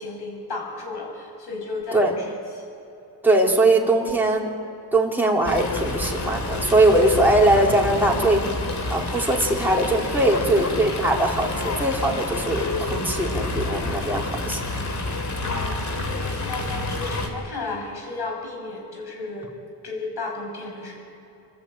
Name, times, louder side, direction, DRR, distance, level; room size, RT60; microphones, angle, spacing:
voice 1, 0.0-2.6 7.5-7.8 8.1-8.5 9.3-9.6 10.3-10.7 15.4-15.9 16.2-19.5 19.8-21.0, left 3 dB, 65° left, 1 dB, 6.7 m, -34 dB
voice 2, 3.2-4.5 4.9-8.4 8.9-14.6, right 1 dB, 5° right, -2 dB, 3.7 m, -21 dB
Fowl, 5.4-17.3, left 2 dB, 40° left, 3.0 m, -28 dB
28.0 x 13.0 x 8.9 m, 2.8 s
cardioid pair, 115°, 43 cm